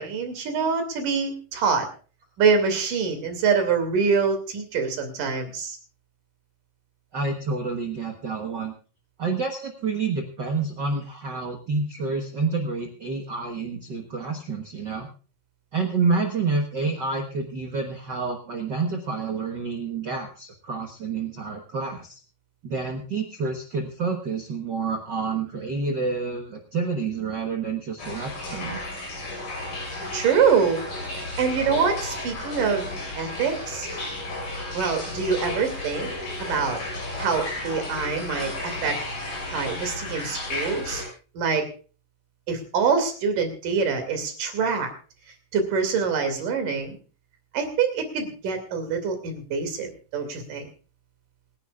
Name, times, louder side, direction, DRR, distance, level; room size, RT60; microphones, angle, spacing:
voice 1, 0.0-1.9 2.4-5.8 30.1-30.8 31.2-32.9 33.2-33.9 34.7-36.1 36.4-36.8 37.2-39.0 39.5-41.0 41.4-41.6 42.5-44.9 45.5-47.0 47.5-50.7, right 5 dB, 85° right, 6 dB, 4.2 m, -25 dB
voice 2, 7.1-8.7 9.2-15.1 15.7-22.2 22.6-28.8, right 4 dB, 50° right, 3 dB, 1.4 m, -28 dB
sound 1, 28.0-41.1, left 2 dB, 80° left, 7.7 m, -33 dB
26.0 x 11.0 x 2.4 m, 0.36 s
omnidirectional pair, 3.7 m